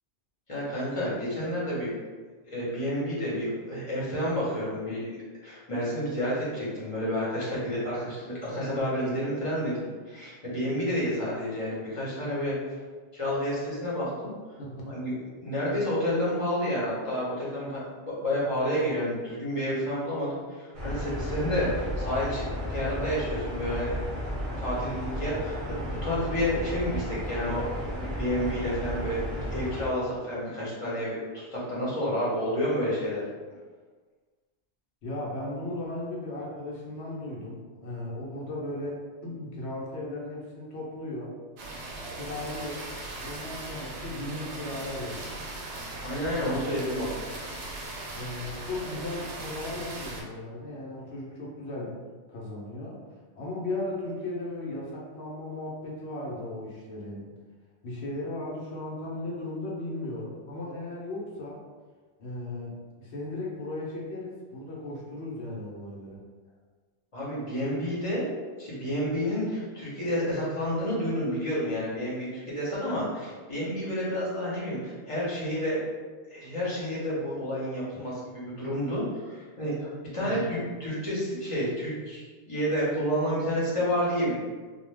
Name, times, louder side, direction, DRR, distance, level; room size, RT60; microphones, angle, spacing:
voice 1, 0.5-1.9 2.5-5.2 5.4-12.5 13.1-14.3 14.9-15.1 15.4-22.4 22.7-24.0 24.6-33.2 46.0-47.1 67.1-68.3 68.6-75.8 76.3-84.4, equal, 30° left, -7 dB, 0.8 m, -30 dB
voice 2, 14.6-15.0 35.0-41.4 42.1-42.8 43.2-45.3 46.4-46.8 48.1-52.0 52.3-53.0 53.4-57.3 57.8-61.6 62.2-66.2 80.2-80.5, left 2 dB, 70° left, -4 dB, 0.9 m, -36 dB
sound 1, 20.7-29.8, equal, 35° right, 0.7 m, -33 dB
sound 2, 41.6-50.2, right 2 dB, 75° right, 0.8 m, -39 dB
2.3 x 2.2 x 3.2 m, 1.4 s
omnidirectional pair, 1.2 m